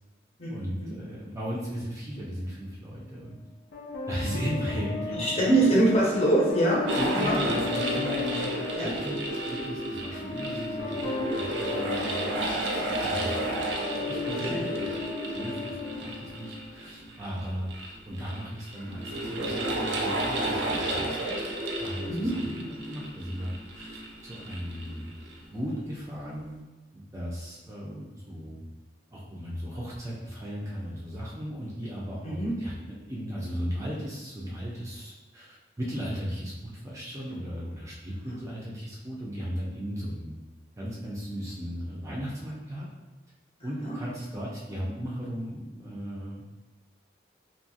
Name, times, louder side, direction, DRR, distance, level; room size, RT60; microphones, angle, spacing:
voice 1, 0.5-3.4 4.1-5.9 6.9-12.3 12.9-13.6 14.1-14.9 15.3-17.7 18.0-21.4 21.8-25.1 25.5-26.6 26.9-28.6 29.1-40.3 40.8-42.8 43.6-46.6, equal, 15° right, -6 dB, 0.4 m, -36 dB
sound 1, 3.7-16.7, left 4 dB, 70° left, 0.5 m, -36 dB
voice 2, 5.2-7.6 8.7-8.9 14.4-14.7 22.1-22.3 32.2-32.5 43.8-43.9, right 1 dB, 35° left, -5 dB, 0.7 m, -24 dB
sound 2, 6.9-25.5, right 1 dB, 75° right, 0.4 m, -32 dB
2.7 x 2.3 x 2.7 m, 1.1 s
head